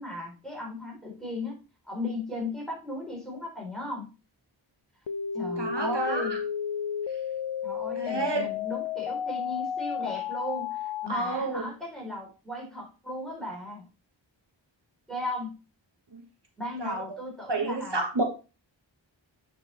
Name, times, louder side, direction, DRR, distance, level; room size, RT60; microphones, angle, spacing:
voice 1, 0.0-1.6 1.8-4.1 5.3-6.4 7.6-13.9 15.1-15.5 16.6-18.0, left 1 dB, ahead, -3 dB, 4.1 m, -36 dB
sound 1, 5.1-11.1, left 7 dB, 70° left, 0.6 m, -32 dB
voice 2, 5.6-6.4 8.0-8.5 11.1-11.7 16.1-16.2 16.8-16.9 17.5-18.2, right 2 dB, 60° right, 2 dB, 1.4 m, -30 dB
8.5 x 5.0 x 3.4 m, 0.31 s
wide cardioid pair, 40°, 46 cm